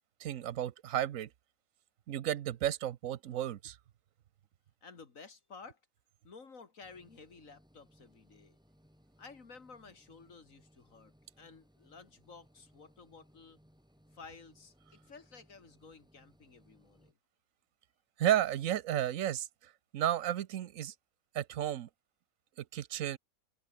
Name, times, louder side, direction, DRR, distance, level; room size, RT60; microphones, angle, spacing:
voice 1, 0.2-1.3 2.1-3.8 18.2-20.9 21.3-21.9 22.6-23.2, right 11 dB, 70° right, 1.2 m, -33 dB
voice 2, 4.8-5.8 6.2-8.6 9.2-13.6 14.1-17.1, left 4 dB, 70° left, 2.7 m, -54 dB
sound 1, 6.8-17.1, equal, 5° right, 7.0 m, -66 dB
omnidirectional pair, 1.5 m